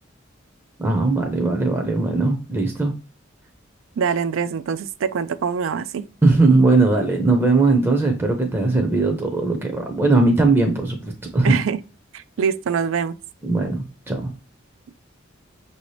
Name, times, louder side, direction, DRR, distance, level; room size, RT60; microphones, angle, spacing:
voice 1, 0.8-2.9 6.2-11.5 13.4-14.3, right 3 dB, 10° right, 0.6 m, -19 dB
voice 2, 4.0-6.0 11.4-11.8 12.1-13.2, right 6 dB, 80° right, 0.3 m, -24 dB
5.9 x 2.7 x 3.1 m
head